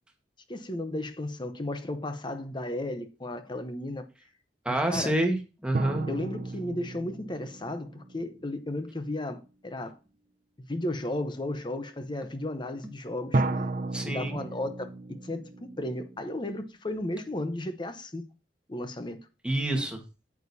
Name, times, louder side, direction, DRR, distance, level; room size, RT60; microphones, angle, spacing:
voice 1, 0.5-4.0 4.7-5.1 6.1-9.9 10.7-13.4 14.1-14.9 15.2-18.2 18.7-19.2, left 1 dB, 25° left, 0.8 m, -34 dB
voice 2, 4.6-6.1 13.9-14.4 19.4-20.0, right 1 dB, 5° right, 1.4 m, -27 dB
sound 1, 5.7-9.1 13.3-16.7, right 2 dB, 45° right, 0.7 m, -33 dB
8.9 x 8.3 x 2.7 m
head